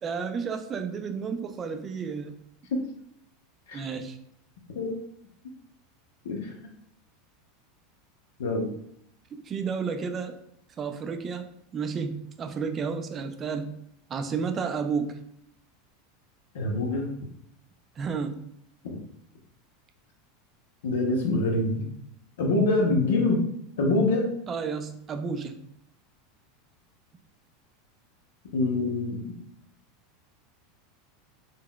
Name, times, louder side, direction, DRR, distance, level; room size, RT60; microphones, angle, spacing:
voice 1, 0.0-2.4 3.7-4.2 9.3-10.4 10.8-13.8 14.1-15.2 18.0-18.4 24.5-25.6, right 5 dB, 25° right, 8 dB, 0.3 m, -32 dB
voice 2, 16.5-17.1 18.8-19.0 20.8-21.9 22.4-23.4 23.8-24.3 28.5-29.4, left 2 dB, 90° left, 1 dB, 0.6 m, -25 dB
3.8 x 2.0 x 2.2 m, 0.73 s
supercardioid pair, 135°, 0 cm